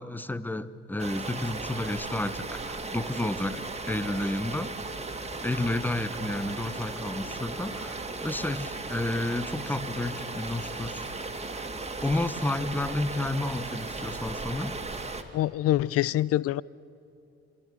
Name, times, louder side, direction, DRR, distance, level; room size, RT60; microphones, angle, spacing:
voice 1, 0.0-4.7 5.2-11.1 11.4-11.7 12.0-14.8, left 1 dB, 5° left, 16 dB, 1.1 m, -31 dB
sound 1, 1.0-15.2, right 3 dB, 20° right, 2.3 m, -36 dB
voice 2, 15.3-16.6, left 14 dB, 45° left, 23 dB, 0.6 m, -25 dB
27.5 x 25.5 x 8.0 m, 2.8 s
figure-of-eight pair, 50°, 34 cm